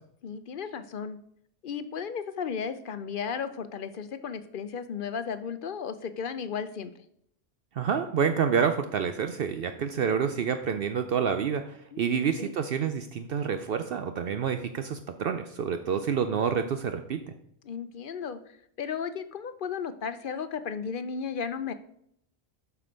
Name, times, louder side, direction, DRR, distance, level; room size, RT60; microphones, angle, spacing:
voice 1, 0.2-1.2 1.6-6.9 11.9-12.5 17.6-21.7, left 6 dB, 55° left, 12 dB, 0.8 m, -35 dB
voice 2, 7.7-17.3, right 7 dB, 65° right, 8 dB, 0.8 m, -28 dB
7.8 x 6.0 x 5.2 m, 0.69 s
omnidirectional pair, 1.1 m